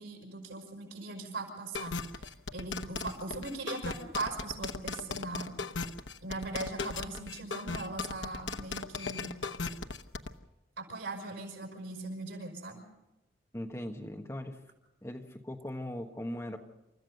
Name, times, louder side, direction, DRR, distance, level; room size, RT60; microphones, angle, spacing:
voice 1, 0.0-5.5 6.2-9.4 10.8-12.8, right 2 dB, 90° right, 2 dB, 5.7 m, -40 dB
sound 1, 1.7-10.3, left 4 dB, 80° left, 1.0 m, -37 dB
voice 2, 13.5-14.6 15.0-16.6, left 1 dB, 15° left, 4 dB, 1.3 m, -39 dB
28.5 x 14.5 x 6.6 m, 0.98 s
head